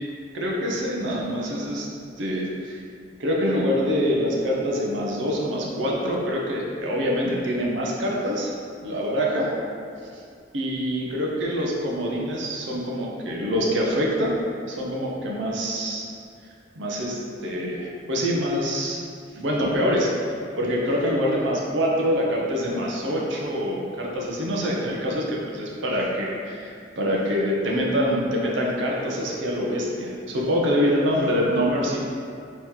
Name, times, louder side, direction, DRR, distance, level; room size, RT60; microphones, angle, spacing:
voice 1, 0.3-1.9 2.2-2.8 3.2-8.5 8.8-9.5 10.1-10.2 10.5-14.4 14.7-16.0 16.8-19.0 19.3-20.1 20.6-32.0, equal, 80° right, -3 dB, 0.7 m, -25 dB
4.4 x 3.1 x 3.6 m, 2.2 s
head